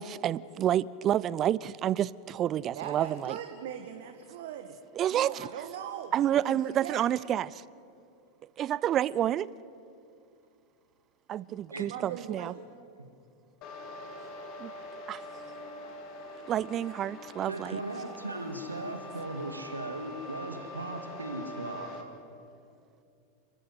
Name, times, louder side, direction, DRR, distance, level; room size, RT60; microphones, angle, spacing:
voice 1, 0.0-3.4 5.0-5.5 6.1-7.6 8.6-9.5 11.3-12.5 14.6-14.7 15.1-15.2 16.5-17.8, right 11 dB, 30° right, 21 dB, 0.5 m, -29 dB
voice 2, 2.7-4.8 5.1-7.1 11.9-12.6, right 9 dB, 55° right, 6 dB, 1.6 m, -40 dB
sound 1, 13.6-22.0, left 1 dB, 40° left, 2.9 m, -44 dB
voice 3, 17.5-21.9, right 2 dB, 80° right, 6 dB, 2.1 m, -37 dB
29.5 x 14.0 x 9.5 m, 2.5 s
figure-of-eight pair, 90°, 0 cm